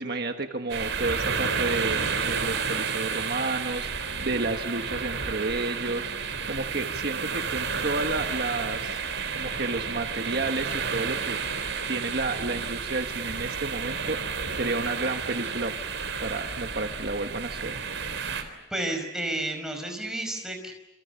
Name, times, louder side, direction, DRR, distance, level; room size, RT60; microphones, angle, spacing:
voice 1, 0.0-9.0 9.3-11.4 11.9-15.7 16.2-17.8, right 3 dB, 55° right, 5 dB, 1.4 m, -31 dB
sound 1, 0.7-18.4, right 5 dB, 80° right, 3.9 m, -31 dB
voice 2, 18.4-20.7, right 1 dB, 5° right, 3 dB, 5.1 m, -32 dB
28.0 x 27.5 x 7.1 m, 0.90 s
head